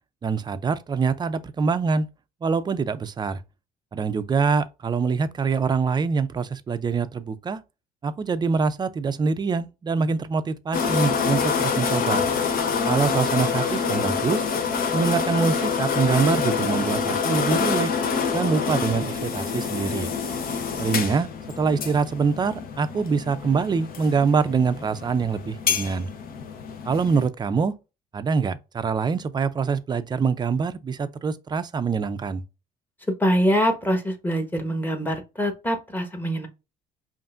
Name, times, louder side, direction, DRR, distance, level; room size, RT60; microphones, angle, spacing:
voice 1, 0.2-2.1 2.4-3.4 3.9-7.6 8.0-12.2 12.9-14.5 14.9-18.0 18.3-20.1 20.8-21.3 21.6-26.1 26.8-27.7 28.1-32.4, right 5 dB, 25° right, 0.5 m, -24 dB
sound 1, 10.7-27.3, left 5 dB, 60° left, 0.8 m, -26 dB
voice 2, 33.2-36.5, equal, 10° left, 1.1 m, -24 dB
5.3 x 2.6 x 2.5 m
cardioid pair, 110°, 17 cm